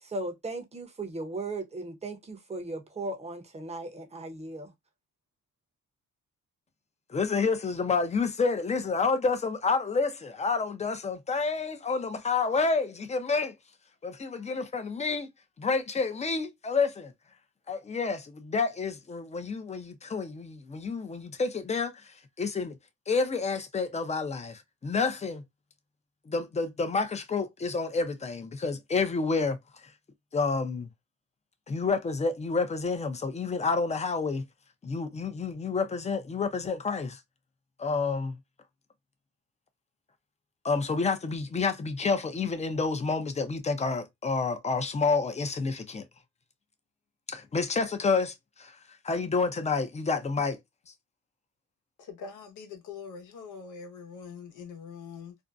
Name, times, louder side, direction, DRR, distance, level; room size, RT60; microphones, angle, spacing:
voice 1, 0.0-4.7, right 2 dB, 20° right, 0.7 m, -37 dB
voice 2, 7.1-13.6 14.0-15.3 15.6-17.1 17.7-22.8 23.1-25.4 26.3-29.9 30.3-30.9 31.7-34.5 34.8-37.2 37.8-38.4 40.6-46.0 47.3-48.8 49.0-50.6 50.9-51.0, left 4 dB, 25° left, 0.5 m, -29 dB
voice 3, 52.0-55.3, left 5 dB, 85° left, 0.9 m, -43 dB
2.6 x 2.1 x 2.3 m
cardioid pair, 90°, 30 cm